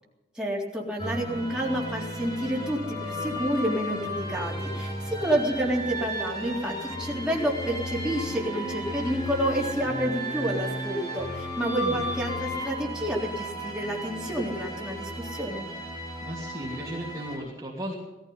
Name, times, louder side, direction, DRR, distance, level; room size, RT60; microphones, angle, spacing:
voice 1, 0.4-15.7, right 1 dB, 5° right, -3 dB, 3.6 m, -29 dB
sound 1, 1.0-17.4, equal, 25° left, 3.8 m, -34 dB
voice 2, 16.2-18.0, right 1 dB, 20° right, -3 dB, 2.9 m, -36 dB
18.0 x 14.5 x 5.5 m, 1.1 s
head